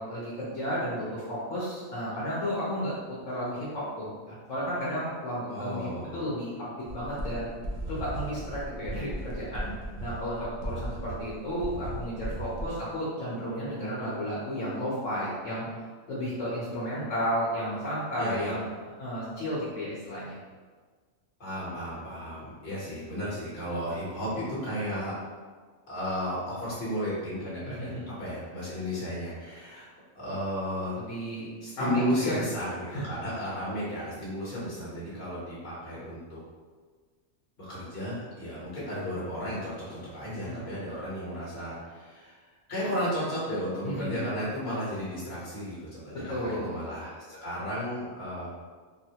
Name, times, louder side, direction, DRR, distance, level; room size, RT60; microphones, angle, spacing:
voice 1, 0.0-2.9 3.3-5.8 6.1-6.5 6.9-7.5 7.9-9.7 10.0-15.7 16.1-18.6 19.0-20.4 27.6-28.1 31.0-31.5 31.8-32.4 32.9-33.0 40.4-40.6 43.8-44.4 46.1-46.8, equal, 65° left, -8 dB, 1.1 m, -33 dB
voice 2, 5.5-6.2 18.2-18.5 21.4-25.1 25.9-29.9 30.1-31.0 31.6-36.4 37.6-42.4 42.7-48.5, equal, 50° left, -8 dB, 1.3 m, -34 dB
sound 1, 6.8-12.7, right 1 dB, 55° right, 0.7 m, -37 dB
3.8 x 2.1 x 2.8 m, 1.5 s
omnidirectional pair, 1.4 m